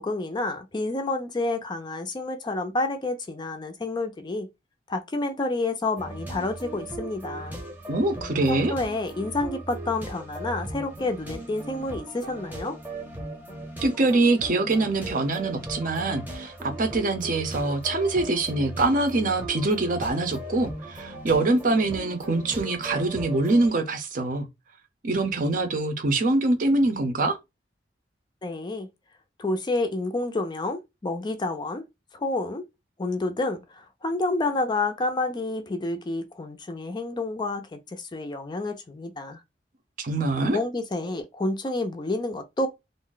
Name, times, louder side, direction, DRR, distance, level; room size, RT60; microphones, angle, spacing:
voice 1, 0.0-4.5 4.9-7.6 8.5-12.8 28.4-28.9 29.4-31.8 32.1-32.7 33.0-39.4 40.4-42.7, left 2 dB, 25° left, 0.4 m, -29 dB
sound 1, 6.0-23.7, right 1 dB, 10° right, 0.8 m, -38 dB
voice 2, 7.9-8.7 13.8-24.5 25.0-27.4 40.0-40.6, right 2 dB, 50° right, 0.6 m, -24 dB
2.5 x 2.1 x 3.7 m
head